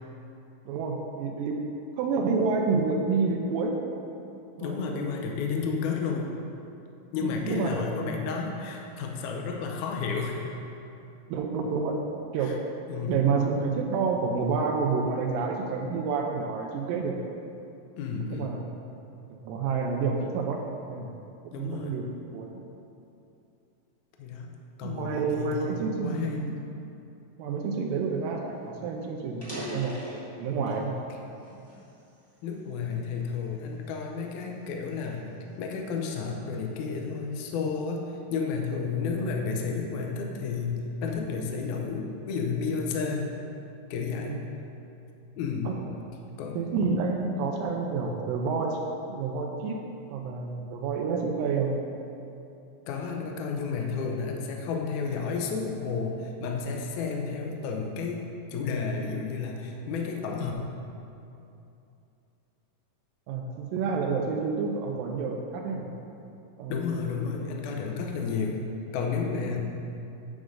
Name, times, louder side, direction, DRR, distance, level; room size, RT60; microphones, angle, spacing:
voice 1, 0.7-1.6 2.0-3.7 4.6-5.3 7.2-7.8 11.3-12.0 12.3-12.5 13.1-17.1 18.1-18.6 19.3-20.6 20.9-21.2 21.5-22.5 24.8-26.6 27.4-30.9 44.2-44.4 45.7-45.8 46.6-48.8 49.1-49.8 50.1-51.7 63.3-65.9 66.6-66.9, right 5 dB, 85° right, 1 dB, 2.3 m, -29 dB
voice 2, 4.6-6.3 7.1-10.5 12.4-12.5 12.9-13.2 18.0-18.6 21.5-21.9 24.2-24.5 24.8-26.5 32.4-35.3 35.6-43.3 43.9-44.3 45.4-45.8 46.4-46.6 52.9-60.6 66.7-68.6 68.9-69.6, left 5 dB, 75° left, 1 dB, 2.0 m, -31 dB
sound 1, 28.2-28.3 28.6-28.8 29.3-30.9 31.4-32.7 33.3-33.5 34.2-36.2, equal, 25° left, 0.5 m, -40 dB
8.9 x 3.7 x 6.3 m, 2.7 s
omnidirectional pair, 3.9 m